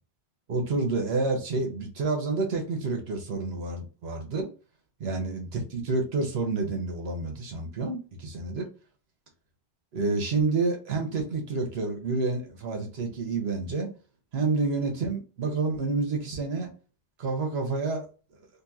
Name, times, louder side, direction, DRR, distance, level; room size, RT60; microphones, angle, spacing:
voice 1, 0.5-4.5 5.0-8.7 9.9-13.9 14.3-16.7 17.2-18.0, right 3 dB, 80° right, 1.1 m, -29 dB
2.9 x 2.5 x 2.4 m
omnidirectional pair, 1.1 m